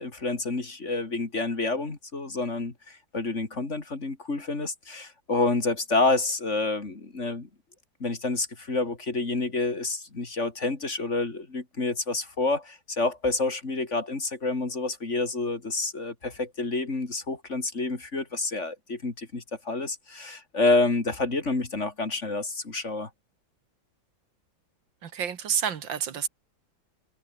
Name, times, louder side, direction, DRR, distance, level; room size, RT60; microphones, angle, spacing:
voice 1, 0.0-7.5 8.0-23.1, left 3 dB, 35° left, 3.2 m, -28 dB
voice 2, 25.0-26.3, right 8 dB, 75° right, 2.3 m, -29 dB
omnidirectional pair, 2.1 m